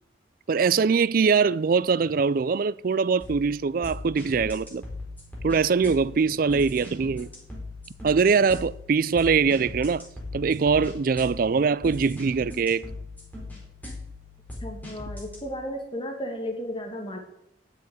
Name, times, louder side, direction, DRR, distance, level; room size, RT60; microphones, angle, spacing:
voice 1, 0.5-4.8 5.4-7.3 8.0-10.0 10.3-12.9, right 5 dB, 55° right, 0.4 m, -22 dB
sound 1, 3.2-15.4, left 2 dB, 10° left, 4.1 m, -40 dB
voice 2, 14.6-17.2, equal, 30° left, 2.3 m, -34 dB
10.5 x 7.1 x 9.4 m
head